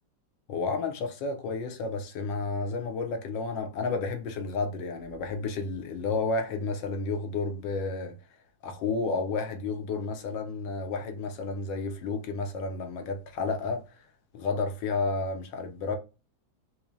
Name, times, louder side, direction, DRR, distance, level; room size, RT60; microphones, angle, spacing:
voice 1, 0.5-8.2 8.6-14.0 14.3-16.0, left 3 dB, 85° left, 1.3 m, -31 dB
5.8 x 2.0 x 2.6 m
omnidirectional pair, 2.0 m